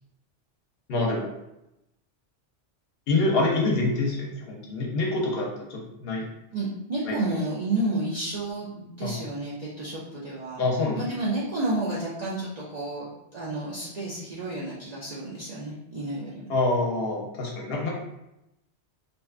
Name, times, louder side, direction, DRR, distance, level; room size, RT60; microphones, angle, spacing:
voice 1, 0.9-1.3 3.1-6.3 7.1-7.2 9.0-9.1 10.6-11.0 16.5-17.9, left 2 dB, 65° left, -2 dB, 0.8 m, -26 dB
voice 2, 6.5-10.6 11.0-16.5, right 2 dB, 55° right, -8 dB, 0.4 m, -31 dB
2.7 x 2.2 x 2.3 m, 0.87 s
omnidirectional pair, 1.2 m